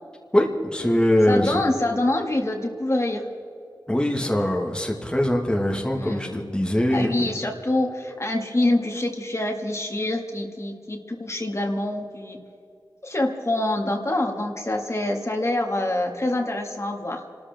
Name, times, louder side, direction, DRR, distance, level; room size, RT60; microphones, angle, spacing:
voice 1, 0.3-1.6 3.9-7.4, left 1 dB, 10° left, 0 dB, 1.6 m, -22 dB
voice 2, 1.3-3.3 5.9-6.4 6.9-12.4 13.0-17.2, left 1 dB, 35° left, 2 dB, 2.0 m, -26 dB
28.5 x 13.0 x 3.5 m, 2.6 s
wide cardioid pair, 75°, 8 cm